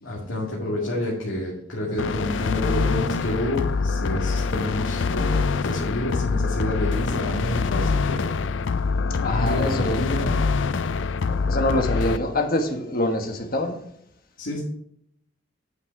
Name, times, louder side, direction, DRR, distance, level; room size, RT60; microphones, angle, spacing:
voice 1, 0.0-8.3 8.6-8.8 9.3-10.3 14.4-14.6, left 1 dB, 85° left, 2.3 m, -29 dB
sound 1, 2.0-12.2, left 4 dB, 70° left, 0.4 m, -25 dB
voice 2, 9.2-10.0 11.3-13.8, left 1 dB, 50° left, 1.3 m, -25 dB
9.6 x 5.8 x 4.7 m
head